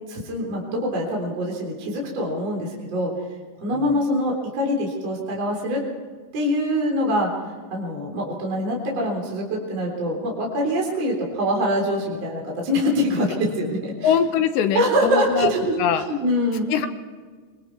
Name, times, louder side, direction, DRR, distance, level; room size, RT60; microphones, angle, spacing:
voice 1, 0.1-3.1 3.6-5.8 6.3-7.3 7.7-14.1 14.7-15.8 16.1-16.7, equal, 35° right, -1 dB, 4.2 m, -24 dB
voice 2, 14.0-15.5 15.8-16.0 16.7-16.9, left 8 dB, 70° left, 8 dB, 2.9 m, -22 dB
25.5 x 24.0 x 4.7 m, 1.5 s
omnidirectional pair, 5.9 m